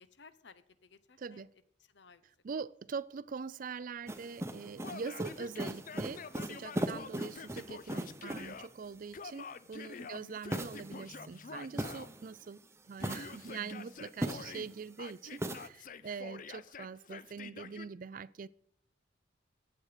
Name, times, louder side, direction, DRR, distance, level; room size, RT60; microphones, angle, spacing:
voice 1, 0.0-1.4 1.9-2.2 9.9-10.4 16.0-16.2, left 4 dB, 70° left, 0.8 m, -57 dB
voice 2, 1.2-1.5 2.4-12.6 12.9-18.5, right 5 dB, 45° right, 0.4 m, -43 dB
sound 1, 4.1-8.7 10.5-12.4 12.9-14.8 15.4-15.7, right 1 dB, 15° right, 0.8 m, -40 dB
Yell, 4.8-8.7 9.1-12.1 13.0-14.7 15.0-17.9, left 5 dB, 45° left, 0.5 m, -47 dB
15.5 x 7.9 x 4.9 m
head